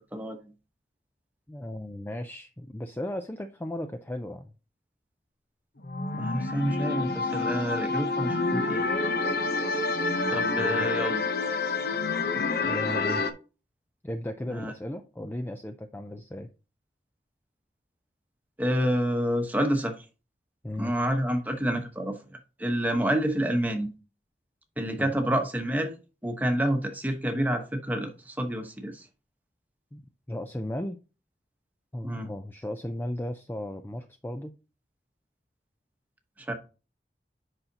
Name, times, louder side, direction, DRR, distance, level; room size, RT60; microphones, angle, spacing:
voice 1, 1.5-4.5 10.3-10.9 12.4-13.3 14.0-16.5 20.6-20.9 25.0-25.1 29.9-30.0 30.3-31.0 31.9-34.6, left 1 dB, 10° left, 0.4 m, -36 dB
sound 1, 5.8-13.3, left 3 dB, 55° left, 0.7 m, -28 dB
voice 2, 6.1-8.8 10.3-11.2 14.5-14.7 18.6-20.0 20.8-23.9 24.8-25.9 26.2-29.0 32.0-32.3 36.4-36.5, equal, 10° right, 1.0 m, -28 dB
8.0 x 5.7 x 2.8 m
head